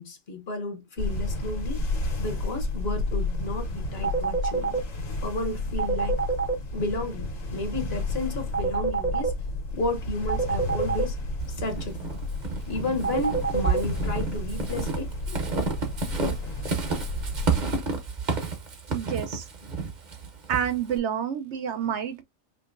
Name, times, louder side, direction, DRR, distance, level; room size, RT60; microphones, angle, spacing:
voice 1, 0.0-1.8 2.2-4.8 5.2-6.2 6.7-9.3 9.7-11.2 11.5-12.2 12.7-15.4, left 2 dB, 50° left, 1.2 m, -32 dB
sound 1, 1.0-17.6, left 2 dB, 75° left, 1.7 m, -32 dB
sound 2, 4.0-4.8 5.8-6.5 8.5-9.3 10.3-11.0 13.0-13.8, right 5 dB, 10° right, 0.7 m, -26 dB
Walk footsteps / Squeak, 11.4-21.0, right 4 dB, 40° right, 1.0 m, -30 dB
voice 2, 18.9-19.5 20.5-22.2, right 8 dB, 65° right, 0.9 m, -28 dB
5.1 x 2.8 x 2.5 m
omnidirectional pair, 1.4 m